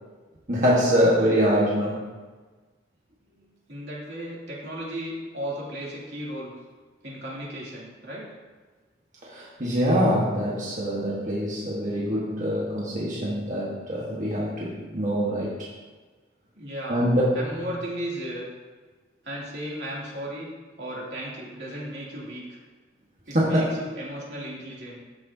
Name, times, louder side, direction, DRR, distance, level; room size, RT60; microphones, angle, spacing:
voice 1, 0.5-2.1 9.3-15.5 16.9-17.2 23.3-23.7, equal, 45° right, -6 dB, 1.4 m, -24 dB
voice 2, 1.1-1.4 3.2-6.5 7.0-8.3 16.6-17.0 17.3-18.5 19.2-20.5 20.8-22.6 23.3-25.0, equal, 75° right, -5 dB, 2.9 m, -35 dB
14.0 x 6.4 x 2.8 m, 1.3 s
head